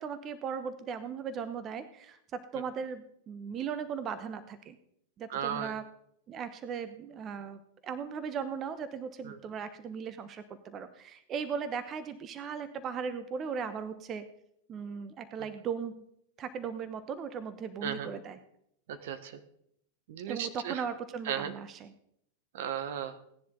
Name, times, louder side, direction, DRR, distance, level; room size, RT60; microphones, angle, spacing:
voice 1, 0.0-4.8 5.2-5.8 6.3-14.2 14.7-16.0 16.4-18.4 20.3-21.9, right 6 dB, 35° right, 11 dB, 1.1 m, -38 dB
voice 2, 5.3-5.7 9.3-9.4 17.8-18.1 18.9-19.4 20.1-20.8 21.3-21.5 22.5-23.1, right 9 dB, 65° right, 10 dB, 1.3 m, -35 dB
17.5 x 10.5 x 3.9 m, 0.72 s
hypercardioid pair, 95°, 0 cm